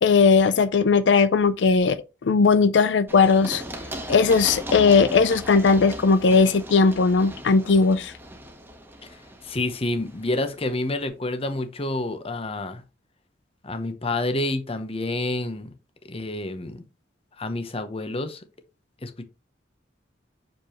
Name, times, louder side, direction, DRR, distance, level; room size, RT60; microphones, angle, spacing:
voice 1, 0.0-3.6 4.1-8.1, left 4 dB, 85° left, 0.5 m, -18 dB
Run, 3.1-10.7, equal, 10° right, 1.3 m, -37 dB
voice 2, 9.4-12.8 13.6-15.7 16.1-16.8 17.4-18.4 19.0-19.2, left 2 dB, 35° left, 0.9 m, -28 dB
6.8 x 5.2 x 3.1 m
head